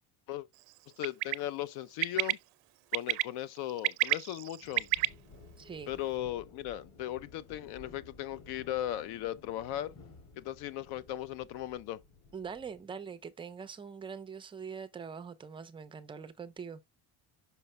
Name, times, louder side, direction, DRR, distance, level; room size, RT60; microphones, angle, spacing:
voice 1, 1.0-2.4 2.9-4.9 5.9-9.9 10.4-12.0, left 13 dB, 65° left, 0.7 m, -37 dB
Bird, 1.0-1.3 2.0-2.3 2.9-3.2 3.7-5.1, right 24 dB, 85° right, 0.6 m, -28 dB
sound 1, 4.6-12.8, left 3 dB, 40° left, 3.2 m, -55 dB
voice 2, 5.6-5.9 12.3-16.8, right 6 dB, 15° right, 0.4 m, -43 dB
5.7 x 5.5 x 3.1 m
cardioid pair, 170°, 41 cm